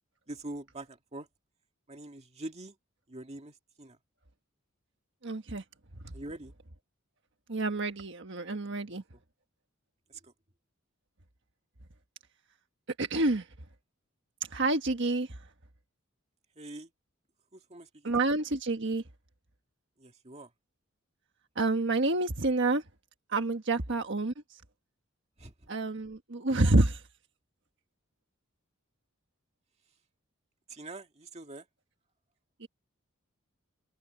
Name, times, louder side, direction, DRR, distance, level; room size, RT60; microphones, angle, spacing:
voice 1, 0.3-1.3 1.9-2.8 3.1-4.0 6.1-6.5 8.6-9.0 10.1-10.3 16.6-16.9 17.5-18.3 20.0-20.5 25.4-25.7 30.7-31.7, right 2 dB, 30° right, 2.0 m, -44 dB
voice 2, 5.2-5.6 6.0-6.1 7.5-9.0 13.0-13.5 14.5-15.3 18.0-19.0 21.5-22.8 23.3-24.3 25.7-27.0 32.6-32.7, right 2 dB, 60° right, 1.4 m, -28 dB
head